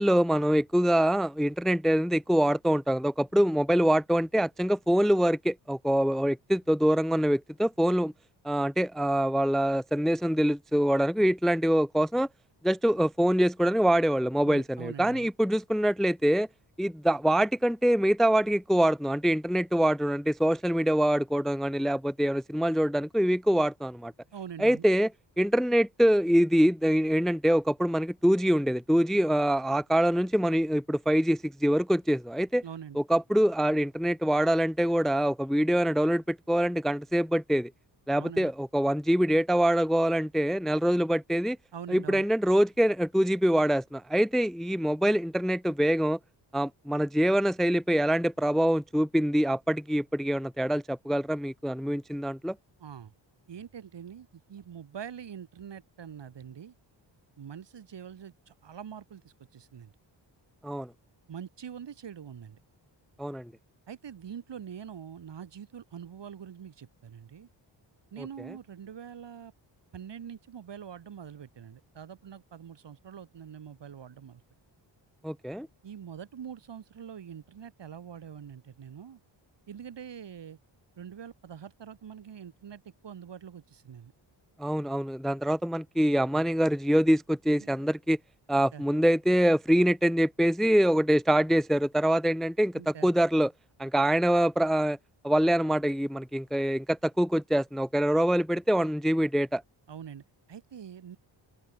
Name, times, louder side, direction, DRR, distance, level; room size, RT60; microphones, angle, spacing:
voice 1, 0.0-8.1 8.4-12.3 12.6-16.5 16.8-24.1 24.6-25.1 25.4-32.6 33.0-37.7 38.1-41.6 41.9-46.2 46.5-52.5 60.6-60.9 63.2-63.5 75.2-75.7 84.6-88.2 88.5-93.5 93.8-95.0 95.2-99.6, equal, ahead, 0.6 m, -25 dB
voice 2, 14.4-15.3 24.3-24.8 32.6-33.0 38.2-38.5 41.7-42.3 52.8-53.1 53.5-56.7 57.4-59.9 61.3-62.6 63.9-67.5 68.1-69.5 69.9-74.4 75.8-79.2 79.7-80.6 81.0-84.1 87.6-87.9 88.7-88.8 92.7-93.1 99.9-100.2 100.5-101.2, right 8 dB, 65° right, 3.7 m, -44 dB
open air
wide cardioid pair, 125°, 46 cm